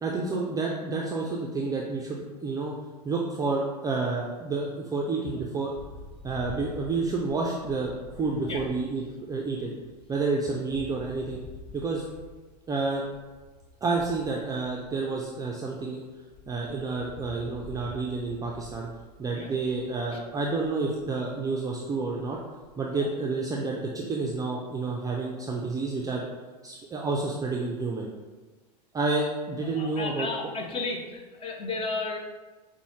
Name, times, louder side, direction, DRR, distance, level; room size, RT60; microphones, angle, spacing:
voice 1, 0.0-2.7 3.0-5.7 6.2-9.7 10.1-11.4 11.7-12.0 12.7-13.0 13.8-16.0 16.5-18.9 19.2-22.4 22.8-26.3 26.6-28.1 28.9-30.3, right 3 dB, 15° right, -2 dB, 0.4 m, -29 dB
sound 1, 5.7-15.8 16.1-22.9, left 2 dB, 65° left, 0.9 m, -47 dB
voice 2, 29.6-32.2, left 3 dB, 25° left, 2 dB, 0.6 m, -33 dB
5.2 x 2.1 x 3.1 m, 1.3 s
hypercardioid pair, 85°, 21 cm